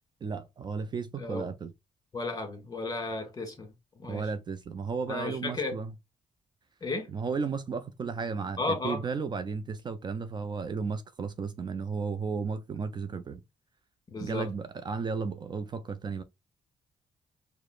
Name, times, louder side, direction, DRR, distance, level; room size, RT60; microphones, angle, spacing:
voice 1, 0.2-1.7 4.1-5.9 7.1-13.4 14.2-16.2, right 5 dB, 40° right, 0.4 m, -34 dB
voice 2, 1.2-1.5 2.1-4.3 5.1-5.8 6.8-7.1 8.6-9.0 14.1-14.5, left 3 dB, 30° left, 1.3 m, -34 dB
4.8 x 2.0 x 2.3 m
cardioid pair, 85°, 12 cm